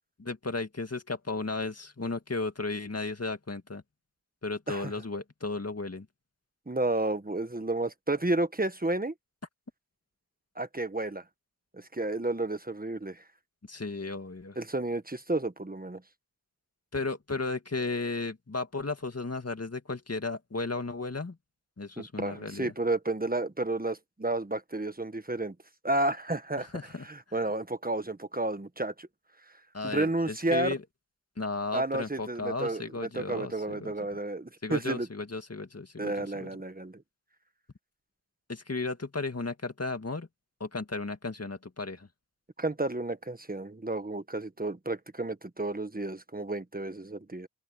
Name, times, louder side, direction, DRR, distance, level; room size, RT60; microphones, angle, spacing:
voice 1, 0.2-3.8 4.4-6.1 13.7-14.6 16.9-21.4 21.8-22.7 26.6-27.0 29.7-30.8 31.4-33.9 34.6-36.5 38.5-40.3 40.6-42.1, left 3 dB, 40° left, 2.1 m, -34 dB
voice 2, 6.7-9.1 10.6-11.2 11.7-13.2 14.6-16.0 22.0-25.5 25.8-26.7 27.0-29.1 29.8-30.7 31.7-35.1 36.0-37.0 42.6-47.5, right 2 dB, 25° right, 1.4 m, -31 dB
open air
wide cardioid pair, 60°, 38 cm